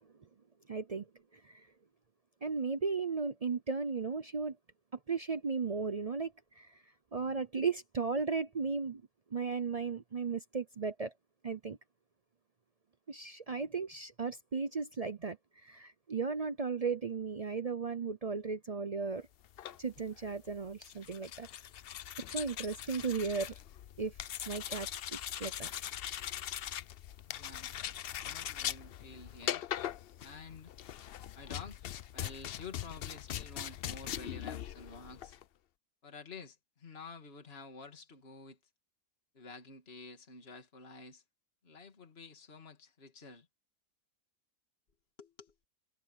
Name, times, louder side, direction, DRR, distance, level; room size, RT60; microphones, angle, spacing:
voice 1, 0.7-1.1 1.3-1.7 2.4-4.6 5.1-6.7 7.1-9.0 9.3-11.1 11.4-11.8 13.1-15.4 15.6-19.3 19.8-21.5 22.3-23.6 24.0-24.1 24.5-25.7, right 5 dB, 45° right, 0.5 m, -35 dB
sound 1, 19.4-35.4, left 11 dB, 60° left, 0.6 m, -41 dB
voice 2, 27.3-27.7 28.2-29.7 30.2-30.7 31.3-31.8 32.1-35.4 36.0-38.6 39.3-41.2 41.6-43.5 45.2-45.5, left 4 dB, 45° left, 2.6 m, -50 dB
omnidirectional pair, 1.5 m